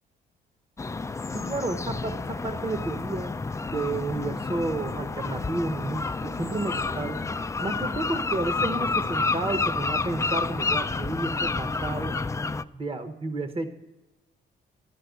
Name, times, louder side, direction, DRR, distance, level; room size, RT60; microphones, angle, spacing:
sound 1, 0.8-12.6, left 3 dB, 15° left, 0.4 m, -29 dB
voice 1, 1.3-3.3 3.7-7.2 7.6-12.2 12.7-13.7, right 2 dB, 30° right, 10 dB, 1.0 m, -31 dB
13.0 x 5.9 x 9.3 m, 1.1 s
cardioid pair, 90°, 20 cm